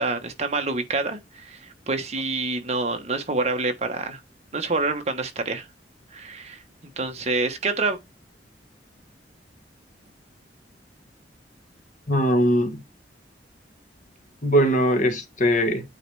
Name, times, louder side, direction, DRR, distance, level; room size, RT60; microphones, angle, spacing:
voice 1, 0.0-1.6 1.9-4.2 4.5-5.6 6.1-6.6 7.0-8.0, right 3 dB, 40° right, 1.3 m, -27 dB
voice 2, 12.1-12.8 14.4-15.8, equal, 45° left, 1.6 m, -20 dB
8.9 x 3.2 x 4.7 m
head